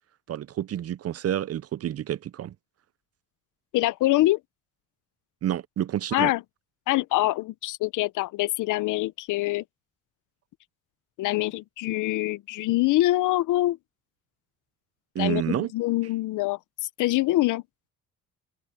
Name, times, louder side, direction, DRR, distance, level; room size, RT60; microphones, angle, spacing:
voice 1, 0.3-2.5 5.4-6.3 15.1-15.7, right 11 dB, 55° right, 0.6 m, -29 dB
voice 2, 3.7-4.4 6.1-6.4 6.9-9.6 11.2-13.8 15.2-16.6 17.0-17.6, left 17 dB, 85° left, 0.7 m, -24 dB
open air
cardioid pair, 90°, 30 cm